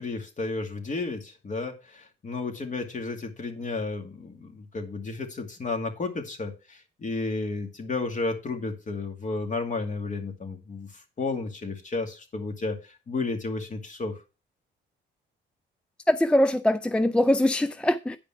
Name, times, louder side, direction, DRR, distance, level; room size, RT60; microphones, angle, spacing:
voice 1, 0.0-14.2, left 3 dB, 40° left, 5 dB, 2.4 m, -32 dB
voice 2, 16.1-18.2, left 1 dB, 5° left, 12 dB, 0.4 m, -22 dB
9.3 x 5.2 x 5.7 m, 0.30 s
cardioid pair, 90°, 20 cm